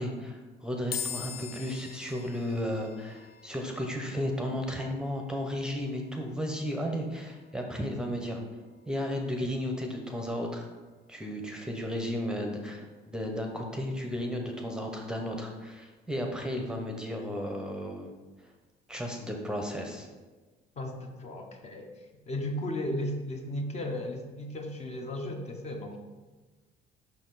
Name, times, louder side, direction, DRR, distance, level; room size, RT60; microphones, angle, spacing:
voice 1, 0.0-8.4 8.9-10.7 11.1-18.1 18.9-20.1, equal, 5° right, 2 dB, 0.7 m, -34 dB
sound 1, 0.9-14.2, left 8 dB, 70° left, 0.4 m, -47 dB
voice 2, 20.8-21.9 22.3-26.0, left 1 dB, 40° left, 3 dB, 0.8 m, -35 dB
5.5 x 4.5 x 3.9 m, 1.3 s
cardioid pair, 110°, 17 cm